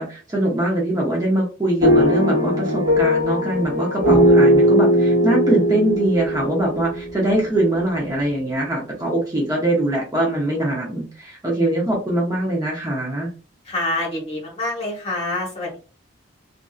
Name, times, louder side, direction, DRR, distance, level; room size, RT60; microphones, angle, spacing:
voice 1, 0.0-13.3, right 1 dB, 20° right, -3 dB, 0.7 m, -22 dB
sound 1, 1.8-7.8, equal, 40° right, 1.3 m, -18 dB
voice 2, 13.6-15.8, left 2 dB, 30° left, -3 dB, 1.0 m, -26 dB
2.6 x 2.5 x 2.3 m, 0.36 s
head